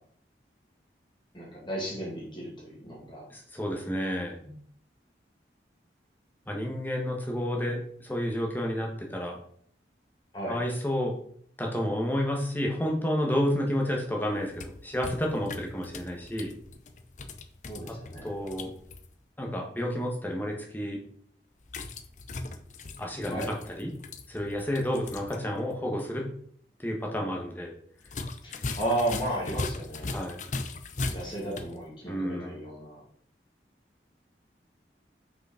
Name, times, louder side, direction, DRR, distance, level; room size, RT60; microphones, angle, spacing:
voice 1, 1.3-3.3 10.3-10.6 17.6-18.4 23.3-23.5 28.4-30.1 31.1-33.0, right 1 dB, 25° left, -4 dB, 2.1 m, -34 dB
voice 2, 3.3-4.5 6.5-9.4 10.5-11.2 11.6-16.5 17.8-18.8 19.4-21.0 23.0-23.9 24.3-26.3 26.8-27.7 30.1-30.4 32.1-32.6, equal, 10° left, 0 dB, 1.5 m, -30 dB
sound 1, 14.3-19.1 21.6-25.4 25.7-25.8 28.0-31.8, left 3 dB, 45° left, 0.7 m, -38 dB
6.2 x 5.4 x 5.1 m, 0.62 s
head